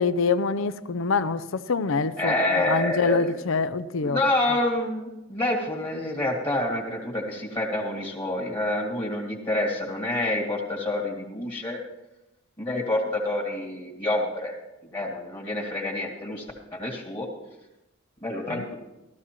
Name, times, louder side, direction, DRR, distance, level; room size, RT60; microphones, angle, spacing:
voice 1, 0.0-4.2 18.5-18.7, left 4 dB, 70° left, 0.5 m, -25 dB
voice 2, 2.2-3.2 4.0-11.8 12.6-14.6 14.9-16.5 16.7-17.3 18.2-18.7, left 1 dB, 25° left, 1.9 m, -27 dB
15.0 x 13.5 x 3.0 m
head